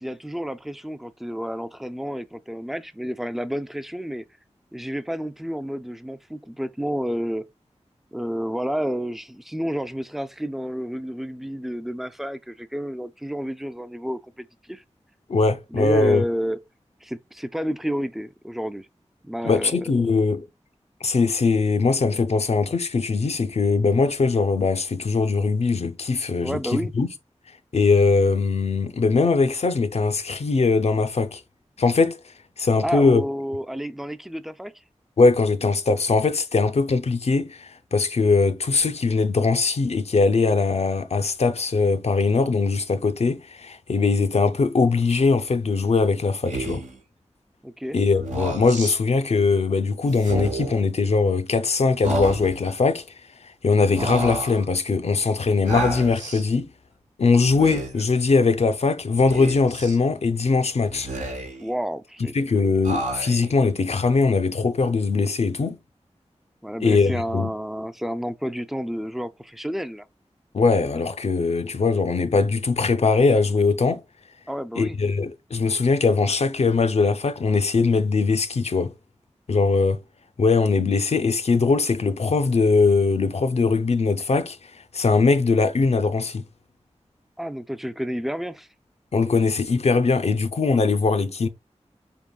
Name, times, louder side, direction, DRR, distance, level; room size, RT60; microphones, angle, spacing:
voice 1, 0.0-4.2 4.7-7.5 8.1-14.8 15.7-16.6 17.0-18.9 19.2-20.1 26.4-26.9 32.8-34.7 47.6-48.0 61.6-62.3 63.6-63.7 66.6-70.1 74.5-75.0 87.4-88.7, equal, ahead, 0.4 m, -30 dB
voice 2, 15.3-16.3 19.4-20.5 21.0-27.1 27.7-31.4 31.8-32.2 32.6-33.2 35.2-46.9 47.9-53.0 53.6-56.7 57.2-61.1 62.3-65.8 66.8-67.5 70.5-74.0 74.8-78.9 79.5-80.0 80.4-86.4 89.1-91.5, left 4 dB, 65° left, 0.5 m, -21 dB
Speech, 46.5-47.0 48.2-49.0 50.2-50.8 52.0-52.7 54.0-54.6 55.7-56.4 57.5-58.1 59.3-60.0 60.9-61.7 62.8-63.5, right 1 dB, 90° right, 1.0 m, -30 dB
4.5 x 3.6 x 2.2 m
wide cardioid pair, 55°, 12 cm